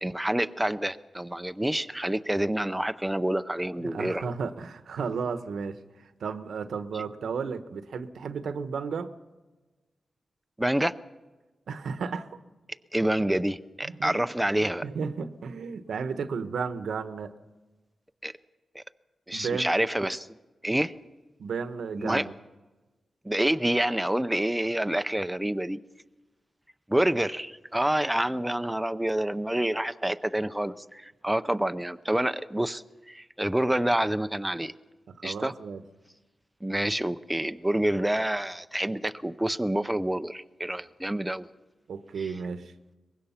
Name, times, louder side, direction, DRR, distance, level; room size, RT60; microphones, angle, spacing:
voice 1, 0.0-4.3 6.9-7.0 10.6-10.9 12.9-14.9 18.2-18.3 18.7-18.8 19.3-20.3 20.6-20.9 22.0-22.3 23.2-25.8 26.9-34.7 35.2-35.5 36.6-41.5 42.2-42.3, right 1 dB, 5° right, 11 dB, 0.6 m, -27 dB
voice 2, 3.8-9.1 11.7-12.4 13.3-13.4 13.8-14.3 14.8-17.4 19.3-19.7 21.4-22.3 35.1-35.8 41.9-42.7, right 5 dB, 90° right, 10 dB, 1.1 m, -33 dB
23.5 x 20.5 x 5.8 m, 1.2 s
wide cardioid pair, 115°, 0 cm